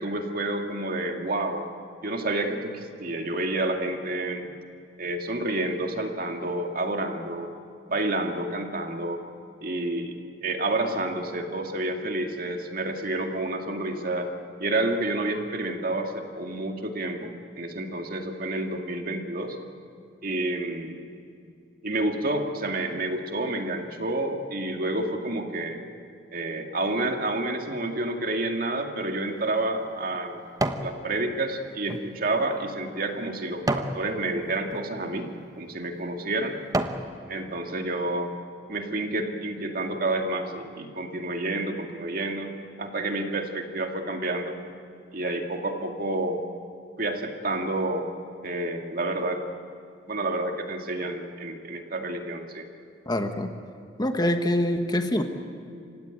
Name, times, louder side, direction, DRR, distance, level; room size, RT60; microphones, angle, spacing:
voice 1, 0.0-1.7 2.0-4.5 5.0-7.5 7.9-9.2 9.6-14.3 14.6-19.6 20.2-21.1 21.8-25.8 26.3-30.4 30.8-35.3 35.6-36.6 37.3-38.3 38.7-42.5 42.8-44.6 45.1-46.4 47.0-48.1 48.4-49.4 50.1-52.7, right 2 dB, 50° right, 4 dB, 2.2 m, -29 dB
sound 1, 29.1-30.9 31.4-34.0 34.6-34.9 35.5-35.7 36.2-37.1 37.6-37.7, right 2 dB, 20° right, 1.1 m, -32 dB
voice 2, 53.1-53.5 54.0-55.2, left 1 dB, 20° left, 7 dB, 1.2 m, -25 dB
28.0 x 17.0 x 9.1 m, 2.5 s
head